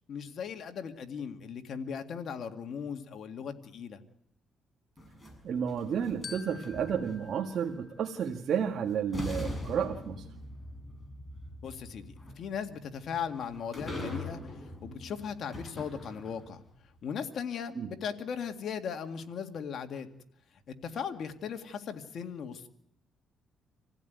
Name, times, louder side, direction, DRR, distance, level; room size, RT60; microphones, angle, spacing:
voice 1, 0.1-4.0 11.6-14.4 14.8-16.6 17.0-20.1 20.7-22.7, left 7 dB, 60° left, 6 dB, 2.1 m, -38 dB
sound 1, 5.0-7.3 8.6-8.7 9.1-16.6, left 1 dB, 20° left, 7.1 m, -42 dB
voice 2, 5.4-10.3 17.8-17.9, right 7 dB, 65° right, 1 dB, 1.9 m, -31 dB
Glockenspiel, 6.2-8.7, left 5 dB, 45° left, 1.5 m, -49 dB
26.5 x 16.0 x 9.4 m, 0.76 s
cardioid pair, 90°, 0 cm